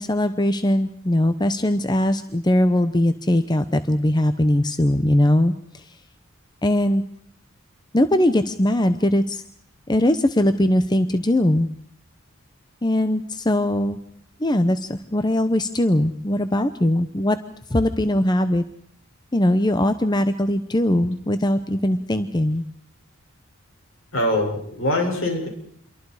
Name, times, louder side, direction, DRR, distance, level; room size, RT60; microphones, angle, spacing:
voice 1, 0.0-5.9 6.6-7.0 7.9-9.4 9.9-11.7 12.8-14.0 14.4-17.4 17.7-18.6 19.3-22.6, left 1 dB, 20° left, 10 dB, 0.8 m, -20 dB
voice 2, 24.1-25.5, left 1 dB, 70° left, 1 dB, 7.0 m, -23 dB
28.0 x 23.5 x 4.9 m, 0.65 s
head